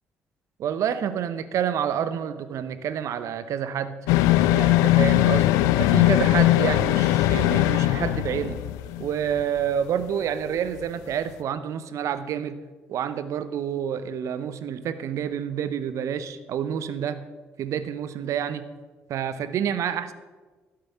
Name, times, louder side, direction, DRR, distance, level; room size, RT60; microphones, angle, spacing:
voice 1, 0.6-4.0 4.5-5.5 5.8-8.6 9.0-12.6 12.9-17.2 17.6-18.7 19.1-20.1, right 8 dB, 60° right, 13 dB, 0.7 m, -28 dB
sound 1, 4.1-9.1 9.4-9.5, left 15 dB, 70° left, 0.4 m, -20 dB
11.5 x 7.6 x 5.6 m, 1.3 s
hypercardioid pair, 45°, 6 cm